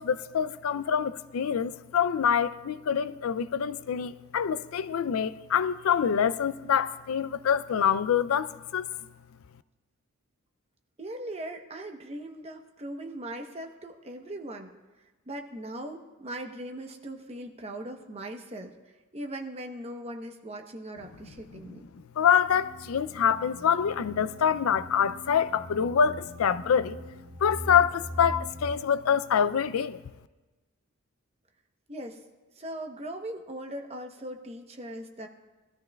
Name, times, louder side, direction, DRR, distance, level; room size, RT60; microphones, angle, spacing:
voice 1, 0.0-8.9 22.2-27.0 27.4-30.0, left 7 dB, 75° left, 0.4 m, -26 dB
voice 2, 11.0-14.7 15.3-18.7 19.1-21.9 31.9-32.2 32.6-35.3, right 1 dB, 30° right, 0.9 m, -39 dB
sound 1, 22.5-28.7, left 1 dB, 60° right, 4.2 m, -42 dB
20.0 x 13.0 x 2.3 m
head